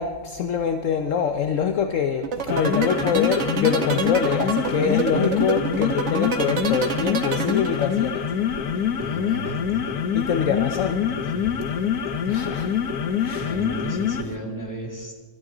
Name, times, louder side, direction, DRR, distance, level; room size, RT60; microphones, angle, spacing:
voice 1, 0.0-8.3 10.1-11.0 12.3-12.7 13.2-13.5, left 7 dB, 60° left, 7 dB, 1.1 m, -24 dB
sound 1, 2.2-8.2, right 7 dB, 55° right, 1.3 m, -27 dB
sound 2, 2.4-14.4, left 8 dB, 90° left, 1.5 m, -25 dB
voice 2, 9.0-9.8 11.1-11.7 13.4-15.1, right 1 dB, 10° left, 0 dB, 2.3 m, -35 dB
24.5 x 12.5 x 3.8 m, 1.4 s
omnidirectional pair, 1.6 m